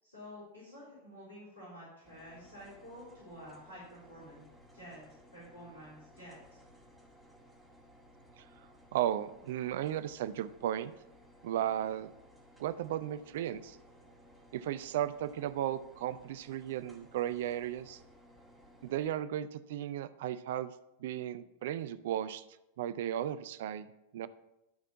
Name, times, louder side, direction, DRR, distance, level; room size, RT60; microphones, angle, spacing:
voice 1, 0.0-4.5 4.7-6.4, equal, 75° left, -10 dB, 3.8 m, -50 dB
sound 1, 2.0-19.1, equal, ahead, 2.1 m, -59 dB
voice 2, 8.9-10.9 11.4-12.1 12.6-13.8 14.5-18.0 18.8-20.7 21.0-22.4 22.8-23.9 24.1-24.3, right 11 dB, 55° right, 14 dB, 0.4 m, -35 dB
12.0 x 4.3 x 5.6 m, 0.91 s
figure-of-eight pair, 90°, 0 cm